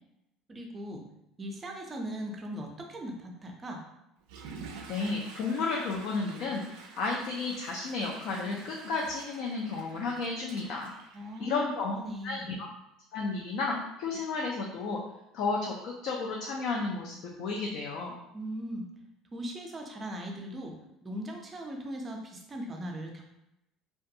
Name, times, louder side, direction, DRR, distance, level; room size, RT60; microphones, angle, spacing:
voice 1, 0.5-1.0 1.4-3.8 11.1-12.5 18.3-18.9 19.3-20.7 21.0-23.2, equal, 20° right, 2 dB, 0.4 m, -39 dB
Water / Toilet flush, 4.2-12.0, right 5 dB, 85° right, 0.3 m, -49 dB
voice 2, 4.9-10.9 11.4-11.9 12.2-12.7 13.1-15.0 15.3-18.1, left 4 dB, 65° left, -1 dB, 0.4 m, -32 dB
2.4 x 2.2 x 2.7 m, 0.86 s
cardioid pair, 140°, 0 cm